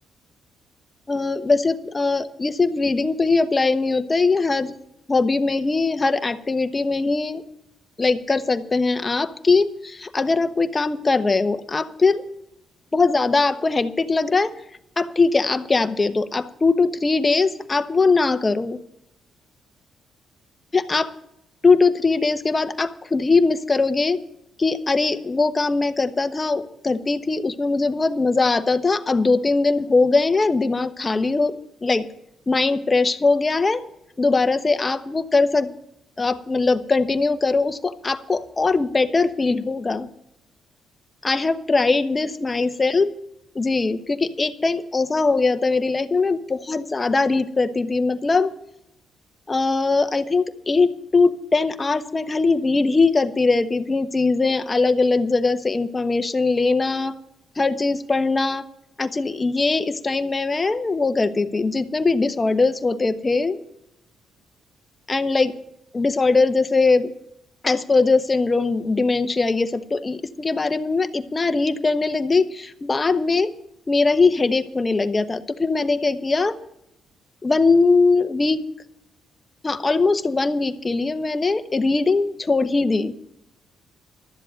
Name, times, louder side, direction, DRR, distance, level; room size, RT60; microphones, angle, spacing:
voice 1, 1.1-4.8 5.1-7.4 8.0-12.2 12.9-14.5 15.0-18.8 20.7-21.1 21.6-24.2 24.6-31.5 31.8-32.1 32.5-33.8 34.2-35.7 36.2-40.1 41.2-43.1 43.5-48.5 49.5-57.2 57.6-58.7 59.0-63.6 65.1-65.6 65.9-67.1 67.6-73.5 73.9-76.5 77.4-78.7 79.6-83.1, left 3 dB, 25° left, 9 dB, 1.0 m, -21 dB
12.5 x 7.6 x 8.9 m, 0.82 s
cardioid pair, 90°, 0 cm